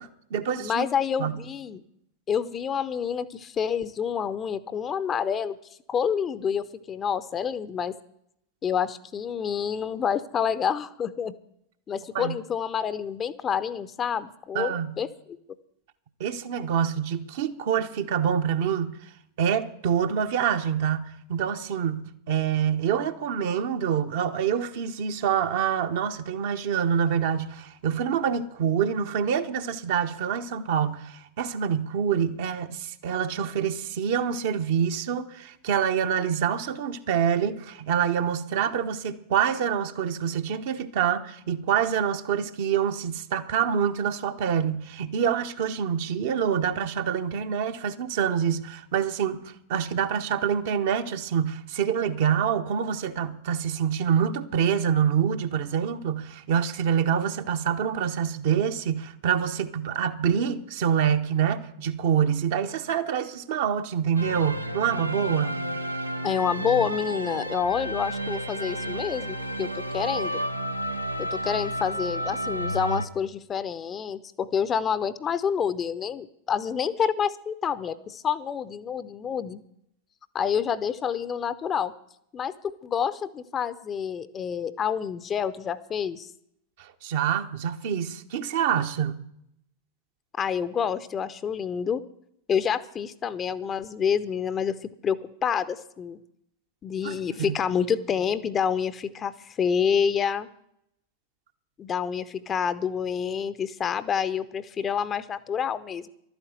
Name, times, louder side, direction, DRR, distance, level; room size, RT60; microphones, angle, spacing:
voice 1, 0.0-0.8 1.2-1.4 12.1-12.3 14.5-15.0 16.2-19.0 19.4-65.6 86.8-89.2 97.0-97.2 97.5-97.6, right 8 dB, 55° right, 1.0 m, -26 dB
voice 2, 0.6-1.8 2.3-5.6 5.9-7.9 8.6-11.3 11.9-15.4 66.2-70.3 71.2-79.6 80.3-81.9 82.3-82.5 82.8-86.3 90.4-92.0 92.5-96.2 96.8-100.5 101.8-106.1, left 7 dB, 25° left, 0.7 m, -28 dB
sound 1, 64.2-73.1, equal, 85° right, 0.7 m, -31 dB
12.0 x 9.5 x 8.0 m
figure-of-eight pair, 90°, 0 cm